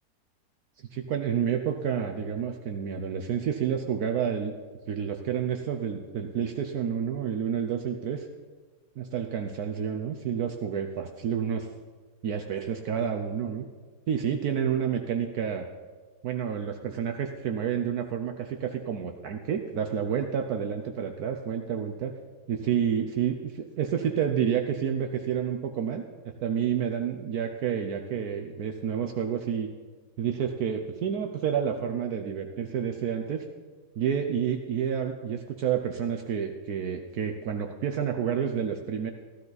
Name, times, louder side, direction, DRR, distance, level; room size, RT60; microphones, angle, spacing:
voice 1, 0.9-4.5 4.9-8.3 9.0-11.7 12.2-13.6 14.1-15.7 16.2-22.1 22.5-26.0 26.4-29.7 30.2-33.4 34.0-39.1, right 8 dB, 70° right, 4 dB, 1.2 m, -29 dB
15.0 x 13.0 x 4.0 m, 1.4 s
omnidirectional pair, 1.8 m